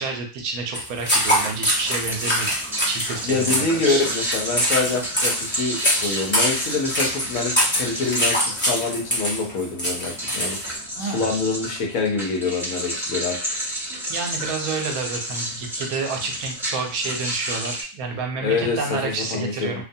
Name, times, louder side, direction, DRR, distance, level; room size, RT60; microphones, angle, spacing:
voice 1, 0.0-2.5 2.8-4.0 11.0-11.3 14.1-19.8, right 4 dB, 75° right, 3 dB, 1.1 m, -29 dB
sound 1, 0.7-10.8, equal, 15° left, 0.5 m, -24 dB
sound 2, 1.4-17.8, equal, ahead, 0.8 m, -31 dB
voice 2, 3.2-13.4 18.4-19.8, left 3 dB, 70° left, 1 dB, 1.0 m, -26 dB
2.6 x 2.1 x 2.6 m, 0.38 s
omnidirectional pair, 1.6 m